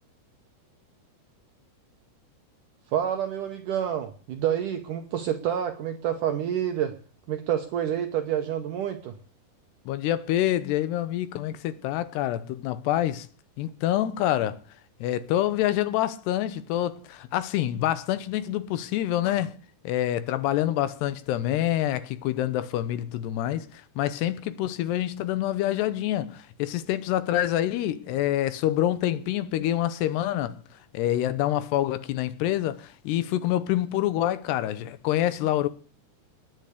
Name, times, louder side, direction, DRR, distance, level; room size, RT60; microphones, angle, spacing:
voice 1, 2.9-6.9 7.3-9.1, right 10 dB, 70° right, 2.0 m, -28 dB
voice 2, 9.9-13.3 13.6-14.6 15.0-19.5 19.8-30.6 30.9-35.7, left 13 dB, 80° left, 2.9 m, -26 dB
19.0 x 8.1 x 8.4 m
omnidirectional pair, 5.0 m